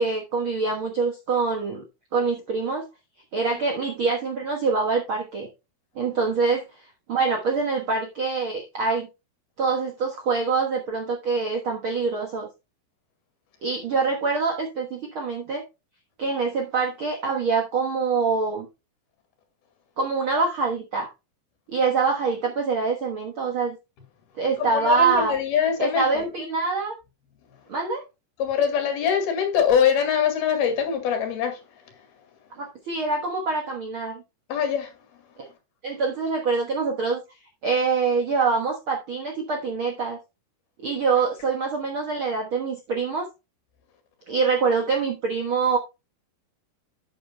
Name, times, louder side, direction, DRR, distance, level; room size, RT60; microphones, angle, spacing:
voice 1, 0.0-1.8 2.1-2.9 3.3-5.5 5.9-6.6 7.1-9.1 9.6-12.5 13.6-15.6 16.2-18.7 20.0-21.1 21.7-23.8 24.4-25.3 25.8-26.9 27.7-28.0 32.5-34.2 35.4-35.5 35.8-37.2 37.6-40.2 40.8-43.3 44.3-45.8, right 4 dB, 90° right, 1.1 m, -25 dB
voice 2, 24.6-26.3 28.4-31.6 34.5-34.9, left 7 dB, 75° left, 3.9 m, -23 dB
11.5 x 9.1 x 2.2 m
omnidirectional pair, 4.5 m